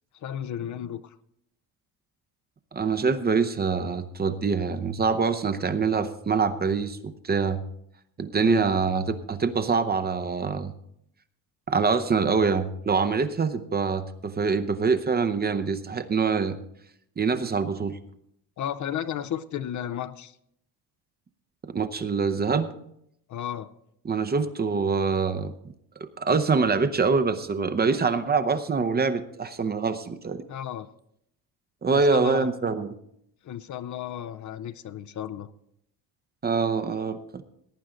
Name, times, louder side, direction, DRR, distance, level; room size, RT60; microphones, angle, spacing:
voice 1, 0.2-1.1 8.4-8.6 18.6-20.4 23.3-23.7 30.5-30.9 31.9-32.5 33.4-35.5, left 10 dB, 45° left, 13 dB, 0.6 m, -33 dB
voice 2, 2.7-7.6 8.2-10.7 11.7-16.6 17.2-18.0 21.6-22.7 24.0-25.5 26.2-30.4 31.8-32.9 36.4-37.4, right 5 dB, 25° right, 11 dB, 0.7 m, -25 dB
18.0 x 9.3 x 3.8 m, 0.74 s
cardioid pair, 115°, 42 cm